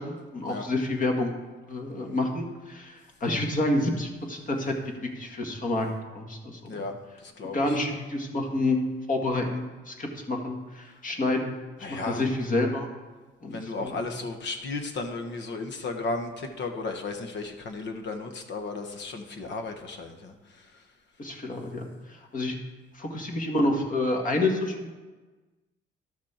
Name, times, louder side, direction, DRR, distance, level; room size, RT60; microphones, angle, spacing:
voice 1, 0.0-1.3 1.7-4.7 5.2-5.9 6.2-6.8 7.5-8.8 9.1-11.6 11.9-12.9 13.4-14.1 21.2-21.9 22.3-22.6 22.9-24.9, left 2 dB, 40° left, 2 dB, 1.9 m, -28 dB
voice 2, 7.2-7.8 11.8-12.3 13.5-20.3, left 3 dB, 65° left, 6 dB, 1.3 m, -34 dB
12.5 x 6.1 x 4.4 m, 1.3 s
cardioid pair, 90°, 20 cm